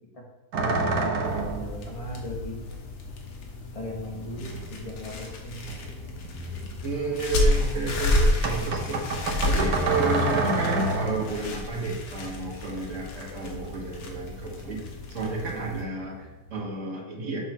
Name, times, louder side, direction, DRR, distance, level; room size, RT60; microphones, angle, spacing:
sound 1, 0.5-1.8 3.3-3.4 4.1-5.3 5.6-7.2 8.4-11.4 13.5-14.4 14.6-15.2 15.6-16.6, right 3 dB, 60° right, 1.2 m, -30 dB
voice 1, 0.6-2.8 3.7-5.7, left 1 dB, 20° left, -3 dB, 1.3 m, -38 dB
sound 2, 1.2-15.8, left 2 dB, 80° left, 1.9 m, -31 dB
voice 2, 6.8-9.0 9.4-17.4, right 3 dB, 45° right, -2 dB, 1.6 m, -31 dB
7.0 x 3.8 x 6.0 m, 1.1 s
omnidirectional pair, 2.2 m